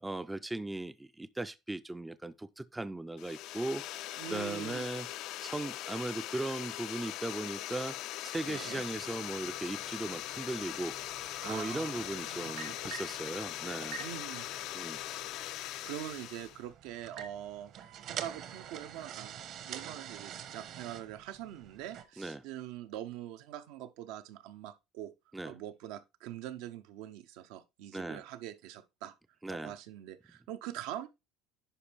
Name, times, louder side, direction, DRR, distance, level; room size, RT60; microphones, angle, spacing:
voice 1, 0.0-4.0 4.3-5.1 5.4-10.9 11.4-14.0 14.7-15.0 22.2-22.4 25.3-25.5 27.9-28.2 29.4-29.7, right 2 dB, 10° right, 0.3 m, -38 dB
sound 1, 3.2-16.6, left 14 dB, 65° left, 0.4 m, -41 dB
voice 2, 4.2-4.9 8.5-8.8 11.4-12.8 14.0-14.5 14.8-15.2 15.9-25.1 25.4-29.1 29.5-31.1, right 12 dB, 80° right, 0.8 m, -44 dB
sound 2, 8.4-22.0, right 8 dB, 55° right, 1.0 m, -48 dB
10.0 x 5.1 x 3.4 m
cardioid pair, 135°, 0 cm